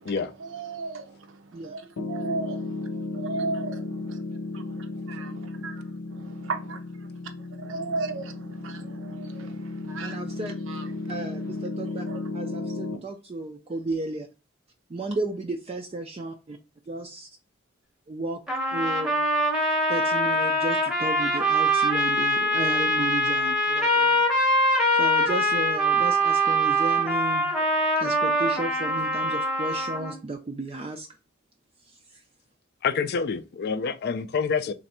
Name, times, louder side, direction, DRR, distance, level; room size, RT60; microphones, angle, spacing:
voice 1, 0.4-1.8 2.1-2.9 3.1-4.2 4.5-5.8 6.1-6.8 7.6-10.4 10.7-11.1 12.1-12.2, right 3 dB, 65° right, 0.6 m, -35 dB
Piano, 2.0-13.0, left 2 dB, 90° left, 0.8 m, -34 dB
voice 2, 10.0-10.6 11.1-12.0 12.3-14.3 14.9-16.6 16.9-17.3 18.1-18.4 18.7-19.2 19.9-24.2 24.9-27.5 28.0-31.1, right 2 dB, 30° right, 0.3 m, -33 dB
sound 1, 18.5-30.2, equal, ahead, 0.8 m, -23 dB
voice 3, 32.8-34.7, left 5 dB, 50° left, 0.4 m, -27 dB
3.3 x 2.6 x 4.1 m
head